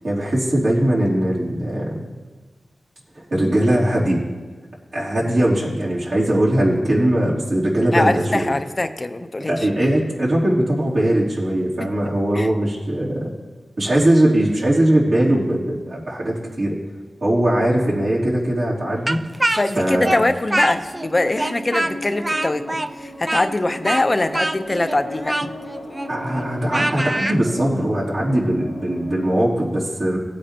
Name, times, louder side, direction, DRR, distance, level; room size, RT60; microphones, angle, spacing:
voice 1, 0.0-1.8 3.3-4.2 4.9-8.5 9.5-13.3 13.8-16.7 17.2-19.2 19.8-20.2 26.1-30.2, right 1 dB, 60° right, -6 dB, 3.2 m, -20 dB
voice 2, 7.9-9.7 12.3-12.5 19.5-25.4, left 2 dB, 35° left, 8 dB, 0.8 m, -22 dB
Speech, 19.1-21.1 21.3-27.4, right 1 dB, 25° right, 0.5 m, -25 dB
sound 1, 20.3-29.4, equal, 80° left, 1.7 m, -37 dB
17.5 x 8.4 x 3.0 m, 1.4 s
cardioid pair, 55°, 0 cm